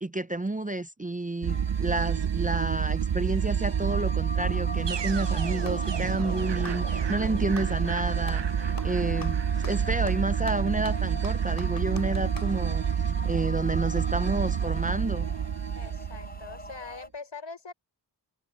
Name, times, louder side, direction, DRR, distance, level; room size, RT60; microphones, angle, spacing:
voice 1, 0.0-12.8 13.2-15.3, right 2 dB, 20° right, 0.6 m, -30 dB
sound 1, 1.4-16.8, right 8 dB, 65° right, 0.8 m, -28 dB
sound 2, 1.5-17.1, left 1 dB, 20° left, 5.2 m, -42 dB
Clapping, 5.7-5.9 6.5-7.8 8.2-8.5 8.8-12.6, left 3 dB, 45° left, 3.9 m, -45 dB
voice 2, 8.5-9.3 15.7-17.7, left 4 dB, 80° left, 6.2 m, -44 dB
wide cardioid pair, 60°, 45 cm